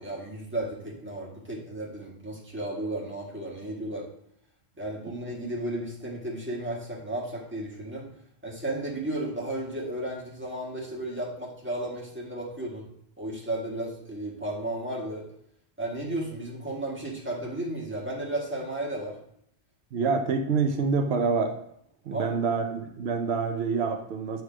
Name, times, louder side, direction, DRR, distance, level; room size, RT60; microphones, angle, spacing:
voice 1, 0.0-4.1 4.8-8.1 8.4-12.9 13.2-15.2 15.8-19.2 22.1-22.4, right 1 dB, 10° right, -5 dB, 1.6 m, -34 dB
voice 2, 19.9-21.6 22.1-24.4, right 5 dB, 80° right, 5 dB, 0.9 m, -26 dB
8.0 x 3.2 x 4.9 m, 0.72 s
omnidirectional pair, 1.1 m